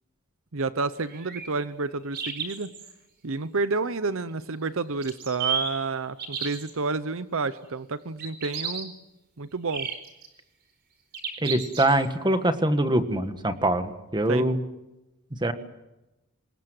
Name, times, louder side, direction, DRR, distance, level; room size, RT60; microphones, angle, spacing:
voice 1, 0.5-2.7 3.2-8.9 9.4-9.9 14.3-14.5, right 3 dB, 65° right, 13 dB, 0.8 m, -30 dB
sound 1, 1.0-1.5 2.1-2.9 5.0-5.7 6.2-6.7 8.2-8.8 9.7-10.3 11.1-12.1, right 6 dB, 50° right, 4.4 m, -32 dB
voice 2, 11.4-14.6 15.4-15.5, right 1 dB, 20° right, 9 dB, 1.4 m, -24 dB
25.5 x 20.5 x 7.8 m, 0.99 s
head